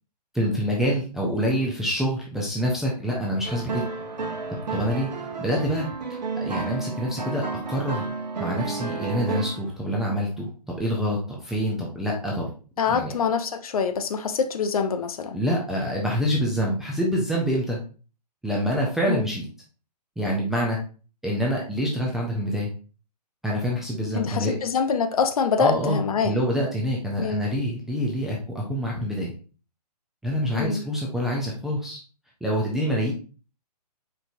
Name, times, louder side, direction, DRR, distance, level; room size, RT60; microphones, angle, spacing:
voice 1, 0.3-3.8 4.7-5.1 5.4-5.9 6.4-8.0 8.4-12.5 12.9-13.1 15.3-17.8 18.4-19.4 20.2-20.8 21.2-22.7 23.4-24.6 25.6-26.0 26.2-29.3 30.2-32.0 32.4-33.1, equal, ahead, 0.3 m, -26 dB
sound 1, 3.4-9.7, right 4 dB, 80° right, 1.0 m, -32 dB
voice 2, 12.8-15.4 19.1-19.3 24.1-26.4 27.2-27.4 30.5-30.8, left 6 dB, 60° left, 0.6 m, -25 dB
4.5 x 3.7 x 2.5 m
figure-of-eight pair, 135°, 21 cm